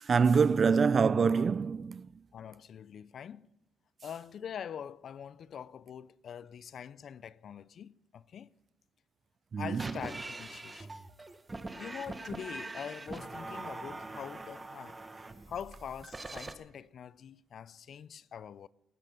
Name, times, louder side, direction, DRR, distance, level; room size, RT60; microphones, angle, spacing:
voice 1, 0.0-2.1 9.5-9.9, right 5 dB, 45° right, 0.4 m, -25 dB
voice 2, 2.3-3.5 4.0-8.5 9.6-11.0 11.7-15.0 15.5-18.7, left 8 dB, 60° left, 0.5 m, -44 dB
sound 1, 9.7-16.5, right 2 dB, 20° right, 1.2 m, -43 dB
19.0 x 9.8 x 5.8 m
cardioid pair, 90°, 0 cm